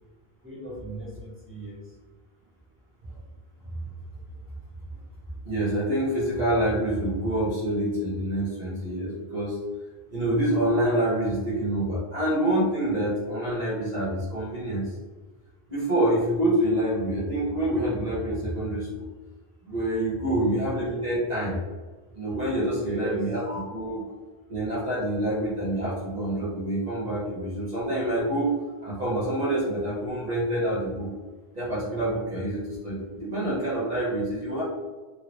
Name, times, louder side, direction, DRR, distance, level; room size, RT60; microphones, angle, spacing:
voice 1, 0.4-1.8 20.2-20.5 22.8-23.2, right 1 dB, 15° right, -5 dB, 0.7 m, -37 dB
voice 2, 5.4-9.6 10.1-14.9 15.7-18.9 19.6-21.6 22.1-24.0 24.5-28.5 28.8-31.1 31.5-34.6, right 1 dB, 40° right, -9 dB, 1.1 m, -27 dB
3.1 x 2.7 x 3.0 m, 1.3 s
omnidirectional pair, 1.1 m